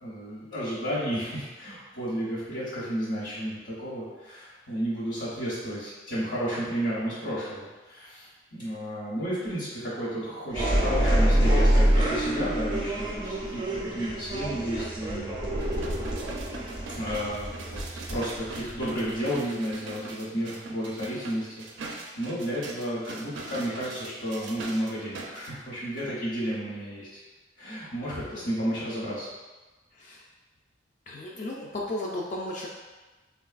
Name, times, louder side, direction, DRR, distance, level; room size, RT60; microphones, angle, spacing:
voice 1, 0.0-8.3 8.6-15.8 17.0-27.1 27.6-29.3, equal, 75° left, -11 dB, 1.1 m, -32 dB
sound 1, 10.5-19.1, right 1 dB, 25° right, 0.5 m, -26 dB
sound 2, 15.6-25.5 26.0-26.1, right 3 dB, 90° right, 0.4 m, -41 dB
voice 2, 28.1-28.5 29.9-30.2 31.1-32.7, left 1 dB, 40° left, -3 dB, 0.3 m, -35 dB
3.7 x 2.2 x 2.4 m, 1.2 s
head